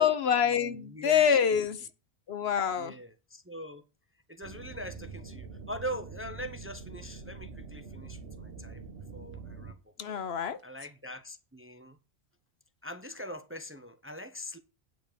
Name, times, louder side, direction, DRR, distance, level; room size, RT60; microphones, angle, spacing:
voice 1, 0.0-1.8 2.3-2.9 10.0-10.6, left 8 dB, 75° left, 1.2 m, -26 dB
voice 2, 0.6-1.4 2.8-3.8 4.3-8.8 9.1-9.8 10.6-12.0 12.8-14.6, equal, 15° right, 0.6 m, -42 dB
sound 1, 4.4-9.7, right 4 dB, 85° right, 1.4 m, -45 dB
9.2 x 5.3 x 6.8 m
omnidirectional pair, 1.1 m